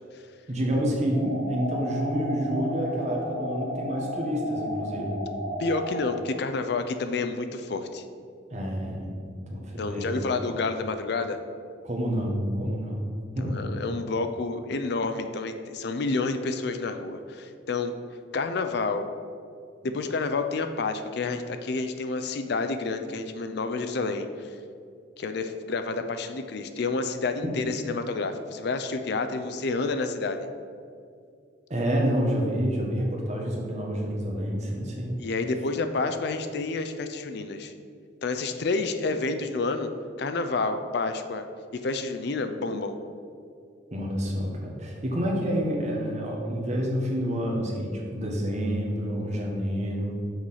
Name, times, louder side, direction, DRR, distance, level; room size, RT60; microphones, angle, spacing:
voice 1, 0.5-5.2 8.5-10.2 11.8-13.0 13.3-13.7 31.7-35.2 43.9-50.2, equal, 35° right, -1 dB, 1.3 m, -28 dB
sound 1, 1.1-6.1, equal, 85° right, 1.3 m, -34 dB
voice 2, 5.6-8.0 9.8-11.4 13.4-17.9 18.3-19.1 19.8-24.5 25.2-30.5 35.2-37.7 38.2-39.9 40.2-41.4 41.7-42.9, left 3 dB, 55° left, 8 dB, 0.4 m, -29 dB
6.3 x 4.8 x 5.6 m, 2.3 s
head